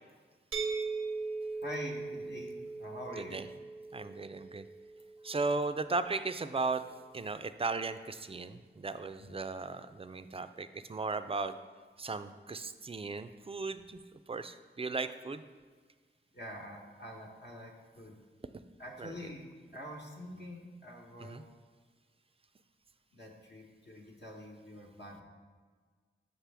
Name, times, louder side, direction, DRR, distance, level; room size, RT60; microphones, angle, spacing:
sound 1, 0.5-6.3, right 4 dB, 90° right, 0.6 m, -40 dB
voice 1, 1.6-3.4 5.2-5.3 9.2-9.3 16.3-18.1 18.8-19.5 19.7-21.4 23.1-25.2, left 1 dB, 55° left, -2 dB, 1.1 m, -46 dB
voice 2, 3.9-4.6 5.2-6.8 7.1-11.5 12.0-14.0 14.3-15.4 19.0-19.2 21.2-21.4, right 3 dB, 30° right, 11 dB, 0.3 m, -36 dB
5.9 x 5.3 x 3.4 m, 1.5 s
cardioid pair, 40°, 20 cm